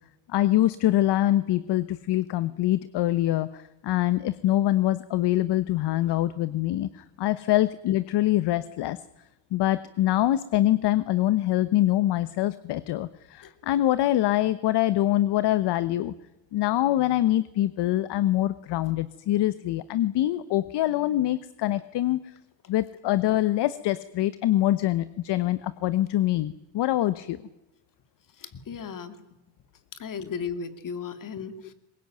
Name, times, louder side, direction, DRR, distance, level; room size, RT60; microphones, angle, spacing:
voice 1, 0.3-9.0 9.5-16.1 16.5-22.2 22.7-27.4, left 14 dB, 60° left, 15 dB, 1.1 m, -24 dB
voice 2, 28.4-29.2 29.9-31.7, left 6 dB, 45° left, 10 dB, 2.6 m, -35 dB
22.5 x 20.0 x 9.2 m, 0.96 s
cardioid pair, 105°, 46 cm